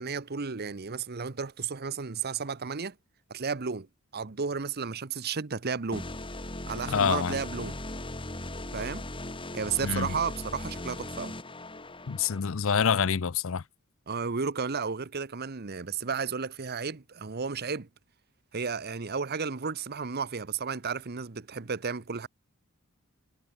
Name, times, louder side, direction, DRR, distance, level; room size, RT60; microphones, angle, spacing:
voice 1, 0.0-2.9 3.3-3.9 4.1-6.1 6.7-7.8 8.7-9.0 9.5-11.3 14.1-17.9 18.5-22.3, right 5 dB, 50° right, 0.9 m, -33 dB
sound 1, 5.9-12.4, left 1 dB, 25° left, 4.7 m, -38 dB
voice 2, 6.9-7.4 9.8-10.1 12.1-13.6, left 6 dB, 70° left, 0.6 m, -26 dB
head